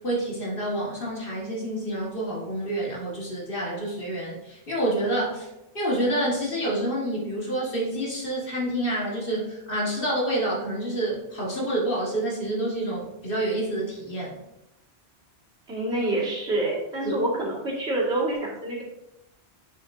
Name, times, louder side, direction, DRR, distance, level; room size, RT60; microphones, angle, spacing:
voice 1, 0.0-5.5 5.7-14.4 17.0-17.1, right 1 dB, 60° left, -4 dB, 2.2 m, -28 dB
voice 2, 15.7-18.8, right 2 dB, 90° right, -5 dB, 2.5 m, -27 dB
7.8 x 6.8 x 2.7 m, 0.92 s
omnidirectional pair, 1.1 m